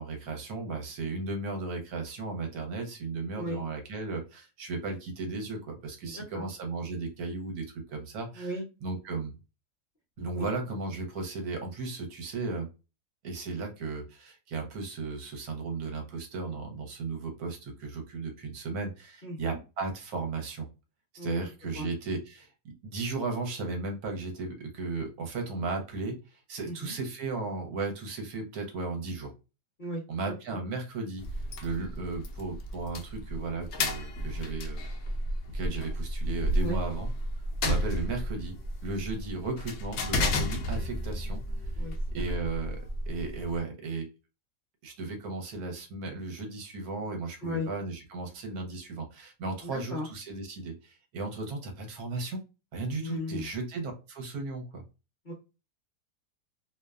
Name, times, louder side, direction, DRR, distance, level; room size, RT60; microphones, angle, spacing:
voice 1, 0.0-8.5 8.8-9.3 10.2-12.7 13.2-20.7 21.1-29.3 30.1-31.2 31.6-34.9 35.5-37.1 37.6-41.4 41.7-41.8 42.1-44.1 44.8-52.4 52.7-54.8, right 3 dB, 75° right, 4 dB, 1.2 m, -35 dB
voice 2, 6.0-6.5 8.3-8.6 10.3-10.5 19.2-19.6 21.2-21.5 21.7-21.9 26.6-26.9 29.8-30.4 36.6-36.8 41.8-42.2 47.4-47.7 49.6-50.1 53.0-53.5 55.2-55.3, equal, 45° left, -3 dB, 0.7 m, -36 dB
sound 1, 31.2-43.6, left 1 dB, 80° left, 0.6 m, -32 dB
2.7 x 2.1 x 2.2 m, 0.29 s
omnidirectional pair, 1.7 m